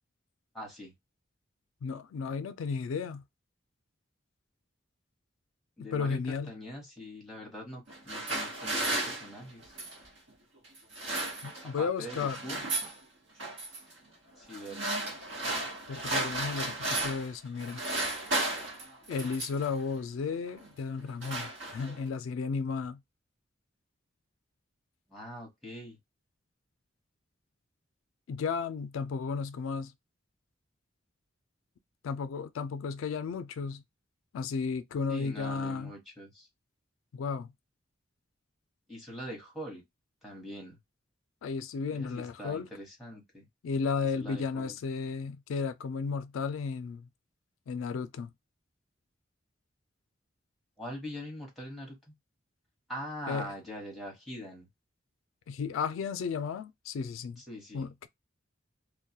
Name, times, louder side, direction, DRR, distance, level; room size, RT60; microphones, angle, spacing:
voice 1, 0.5-0.9 5.8-9.7 11.6-12.7 14.4-14.9 25.1-26.0 35.1-36.5 38.9-39.8 40.2-40.8 41.9-43.5 44.1-44.8 50.8-52.1 52.9-54.7 57.4-57.9, equal, ahead, 1.0 m, -43 dB
voice 2, 1.8-3.2 5.8-6.5 11.4-12.4 15.9-17.8 19.1-23.0 28.3-29.9 32.0-33.8 34.3-35.9 37.1-37.5 41.4-42.7 43.6-47.1 47.7-48.3 53.3-53.5 55.5-57.4 57.7-58.1, left 5 dB, 85° left, 0.3 m, -34 dB
sound 1, 7.9-10.1 10.8-11.8 12.0-13.0 13.4-13.8 14.5-17.3 17.6-19.7 20.5-20.7 21.0-22.1, right 2 dB, 65° right, 0.9 m, -34 dB
2.3 x 2.1 x 2.7 m
head